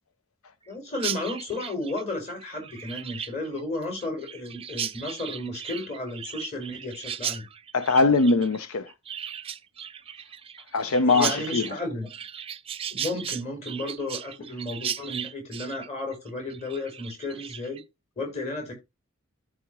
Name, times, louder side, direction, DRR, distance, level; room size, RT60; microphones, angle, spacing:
voice 1, 0.7-7.5 11.0-12.1 12.9-17.8 18.2-18.7, left 2 dB, 35° left, 4.3 m, -33 dB
Chirp tweet, 1.0-17.8, right 9 dB, 25° right, 0.4 m, -36 dB
voice 2, 7.7-8.9 10.7-11.8, left 3 dB, 80° left, 0.6 m, -22 dB
14.0 x 4.9 x 3.0 m
head